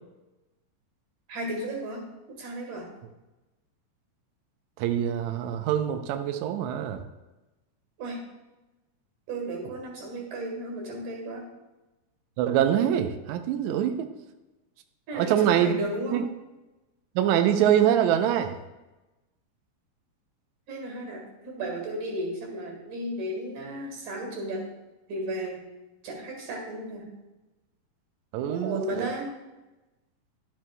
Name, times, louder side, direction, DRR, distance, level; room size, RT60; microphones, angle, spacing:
voice 1, 1.3-2.9 8.0-8.3 9.3-11.5 15.1-16.2 20.7-24.7 25.1-25.6 26.0-27.1 28.5-29.3, right 1 dB, 65° right, 1 dB, 3.0 m, -34 dB
voice 2, 4.8-7.0 12.4-14.1 15.1-15.8 16.1-16.3 17.1-18.6 28.3-29.1, right 10 dB, 90° right, 6 dB, 1.6 m, -24 dB
11.5 x 7.4 x 2.2 m, 1.1 s
omnidirectional pair, 4.0 m